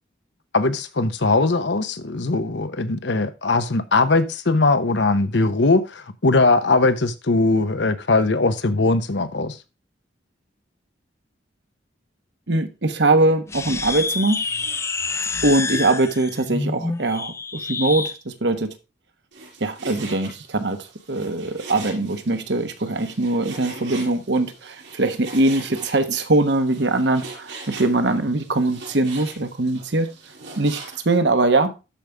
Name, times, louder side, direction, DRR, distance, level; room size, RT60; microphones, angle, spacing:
voice 1, 0.5-9.6, left 3 dB, 70° left, 0.9 m, -20 dB
voice 2, 12.5-14.4 15.4-18.7 19.6-30.1 30.6-31.7, right 2 dB, 65° right, 1.2 m, -22 dB
sound 1, 13.5-18.2, left 4 dB, 15° left, 0.4 m, -28 dB
Frying (food), 19.3-31.2, right 3 dB, 85° right, 5.2 m, -40 dB
13.0 x 5.2 x 3.5 m
head